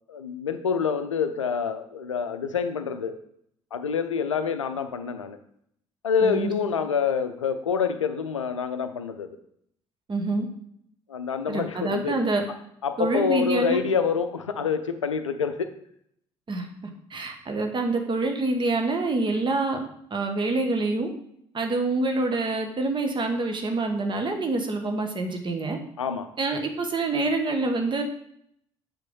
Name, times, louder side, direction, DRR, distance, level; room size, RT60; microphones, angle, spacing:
voice 1, 0.1-3.2 3.7-5.4 6.0-9.3 11.1-12.1 12.8-15.7 26.0-26.3, left 6 dB, 80° left, 9 dB, 0.5 m, -27 dB
voice 2, 6.2-6.5 10.1-10.5 11.5-12.4 13.0-13.8 16.5-16.7 17.1-19.8 20.1-21.1 21.5-25.8 26.4-28.0, right 2 dB, 30° right, 5 dB, 1.3 m, -26 dB
8.1 x 3.5 x 5.3 m, 0.71 s
figure-of-eight pair, 50°, 16 cm